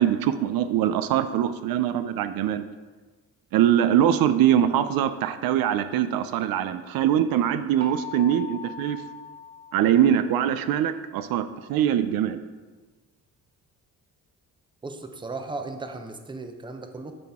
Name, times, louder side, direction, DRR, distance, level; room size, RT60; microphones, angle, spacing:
voice 1, 0.0-2.6 3.5-9.0 9.7-12.4, right 10 dB, 75° right, 11 dB, 0.5 m, -23 dB
sound 1, 7.8-10.6, left 2 dB, 45° right, 1.0 m, -40 dB
voice 2, 14.8-17.1, right 3 dB, 15° right, 6 dB, 0.6 m, -36 dB
11.5 x 4.0 x 3.6 m, 1.3 s
cardioid pair, 95°, 36 cm